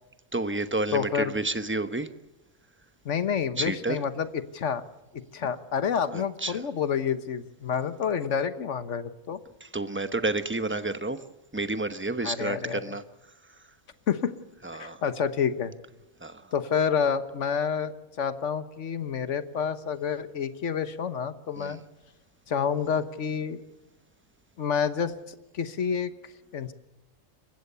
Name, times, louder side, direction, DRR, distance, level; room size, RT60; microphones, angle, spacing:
voice 1, 0.3-2.1 3.6-4.0 6.1-6.6 9.6-11.2 11.5-13.0 14.6-15.0 16.2-16.4 21.6-21.8, right 2 dB, 10° right, 11 dB, 0.9 m, -30 dB
voice 2, 0.9-1.3 3.0-4.3 4.5-4.8 5.3-9.4 12.2-12.8 14.1-14.3 14.7-15.7 16.5-21.8 22.5-23.6 24.6-26.1 26.5-26.7, left 7 dB, 70° left, 12 dB, 1.5 m, -28 dB
28.0 x 15.5 x 6.9 m, 1.0 s
omnidirectional pair, 1.3 m